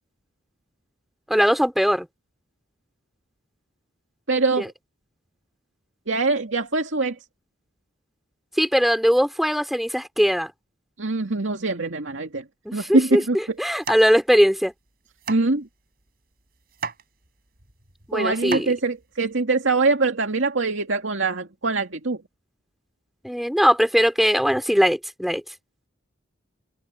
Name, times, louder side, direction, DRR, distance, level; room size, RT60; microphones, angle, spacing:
voice 1, 1.3-2.1 4.6-4.7 8.6-10.5 12.6-14.7 18.1-18.7 23.2-25.4, equal, ahead, 3.2 m, -20 dB
voice 2, 4.3-4.7 6.1-7.2 11.0-12.4 12.7-13.6 15.3-15.7 18.1-22.2, right 3 dB, 85° right, 2.2 m, -23 dB
sound 1, 12.9-19.4, right 5 dB, 50° right, 7.2 m, -38 dB
open air
head